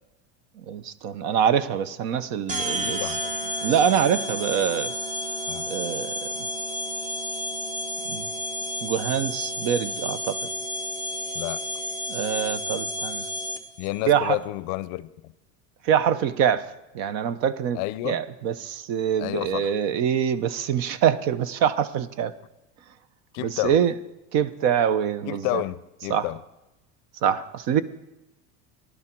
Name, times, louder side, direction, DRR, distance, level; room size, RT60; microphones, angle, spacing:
voice 1, 0.7-3.0 3.6-4.9 5.7-6.2 8.0-8.2 8.8-10.4 12.1-13.3 14.1-14.4 15.8-16.7 16.9-17.8 18.0-22.3 23.4-23.9 24.3-25.6 26.1-26.3 27.2-27.8, right 8 dB, 50° right, 0.8 m, -24 dB
sound 1, 2.5-13.9, equal, 20° right, 1.0 m, -31 dB
voice 2, 2.8-3.3 5.5-5.7 11.3-11.6 13.8-15.3 17.7-18.2 19.2-19.8 23.3-23.8 25.3-26.4, left 18 dB, 50° left, 0.6 m, -30 dB
16.0 x 11.5 x 4.5 m
supercardioid pair, 155°, 35 cm